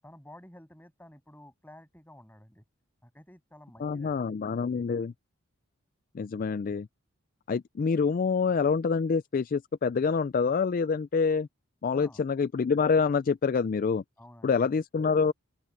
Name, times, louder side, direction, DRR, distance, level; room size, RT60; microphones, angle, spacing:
voice 1, 0.0-2.6 3.0-4.8 11.9-12.2 14.2-14.6, left 1 dB, 10° left, 7.2 m, -52 dB
voice 2, 3.8-5.1 6.1-6.9 7.5-11.5 11.8-14.0 14.4-15.3, left 5 dB, 40° left, 0.3 m, -26 dB
open air
head